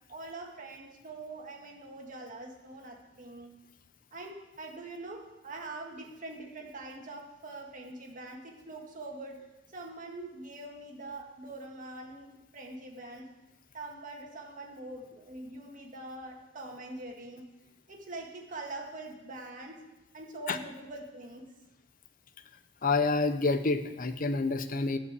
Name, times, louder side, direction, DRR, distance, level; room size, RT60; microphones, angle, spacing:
voice 1, 0.1-3.5 4.1-9.5 9.7-13.3 13.7-17.4 17.9-19.8 20.1-21.5, right 2 dB, 45° right, 1 dB, 1.9 m, -43 dB
voice 2, 22.8-25.0, left 3 dB, 50° left, 10 dB, 0.7 m, -28 dB
12.5 x 5.5 x 8.2 m, 1.0 s
head